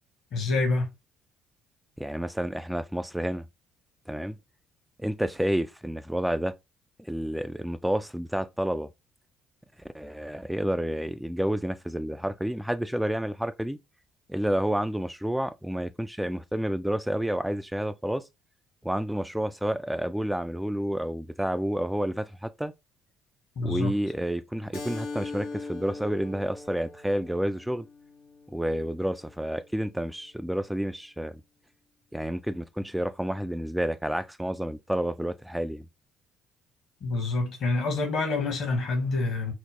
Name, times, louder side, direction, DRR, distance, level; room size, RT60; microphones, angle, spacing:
voice 1, 0.3-0.9 23.6-23.9 37.0-39.5, left 3 dB, 60° left, 1.1 m, -27 dB
voice 2, 2.0-3.5 4.1-4.4 5.0-6.5 7.1-8.9 9.9-13.8 14.3-18.2 18.8-22.7 23.6-27.9 28.5-31.4 32.1-35.9, equal, 5° right, 0.3 m, -30 dB
Keyboard (musical), 24.7-29.9, left 3 dB, 85° left, 0.8 m, -41 dB
3.0 x 2.1 x 3.5 m
hypercardioid pair, 55°, 0 cm